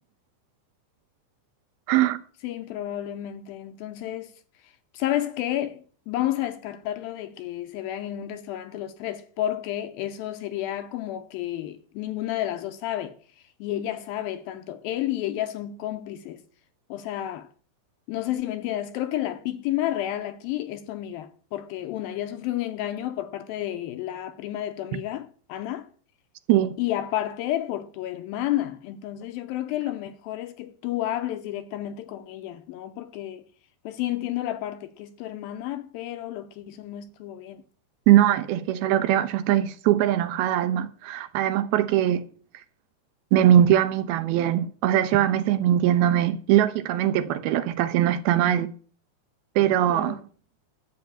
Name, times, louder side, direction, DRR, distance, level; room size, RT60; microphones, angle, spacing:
voice 1, 1.9-2.2 26.5-26.8 38.1-42.2 43.3-48.7 49.6-50.2, right 11 dB, 80° right, 2.5 m, -21 dB
voice 2, 2.4-4.4 4.6-13.2 13.6-16.4 16.9-17.5 18.1-25.9 26.8-33.4 33.9-37.6 49.9-50.2, left 13 dB, 80° left, 2.3 m, -31 dB
11.5 x 5.6 x 8.8 m
omnidirectional pair, 4.6 m